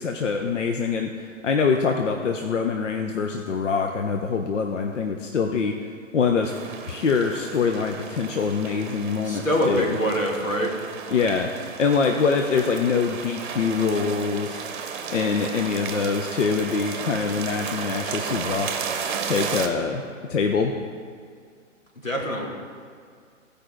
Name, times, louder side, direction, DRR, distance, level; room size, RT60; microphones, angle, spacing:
voice 1, 0.0-5.7 6.1-6.5 6.9-10.0 11.1-11.5 11.8-14.6 15.1-18.9 19.2-20.0 20.3-20.7, left 5 dB, 65° left, 3 dB, 0.7 m, -24 dB
sound 1, 6.4-19.7, right 6 dB, 40° right, 0.8 m, -34 dB
voice 2, 9.2-10.8 22.0-22.5, equal, 90° left, -1 dB, 1.9 m, -24 dB
14.0 x 5.1 x 4.5 m, 2.1 s
figure-of-eight pair, 120°, 39 cm